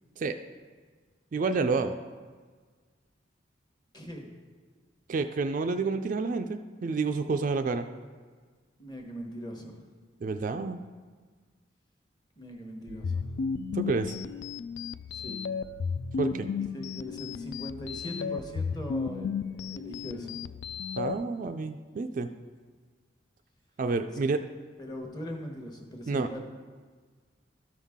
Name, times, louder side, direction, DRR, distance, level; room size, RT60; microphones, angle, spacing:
voice 1, 1.3-2.0 5.1-7.9 10.2-10.8 13.7-14.1 16.2-16.5 21.0-22.3 23.8-24.4 26.1-26.3, right 4 dB, 45° right, 7 dB, 0.3 m, -29 dB
voice 2, 3.9-4.3 8.8-9.8 12.4-13.2 15.1-15.4 16.7-20.4 24.8-26.4, equal, 20° left, 2 dB, 1.0 m, -40 dB
sound 1, 12.9-21.1, left 5 dB, 70° left, 0.3 m, -34 dB
13.0 x 5.6 x 3.6 m, 1.5 s
head